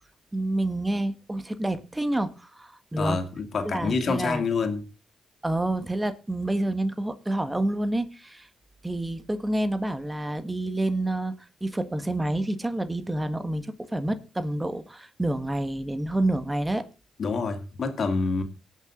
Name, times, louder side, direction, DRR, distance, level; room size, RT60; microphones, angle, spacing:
voice 1, 0.3-3.3 3.6-4.5 5.4-8.5 8.8-11.3 11.6-16.9, right 1 dB, 15° right, 1.7 m, -28 dB
voice 2, 3.0-4.8 17.2-18.4, left 4 dB, 60° left, 2.6 m, -27 dB
19.0 x 6.5 x 3.9 m
supercardioid pair, 55°, 0 cm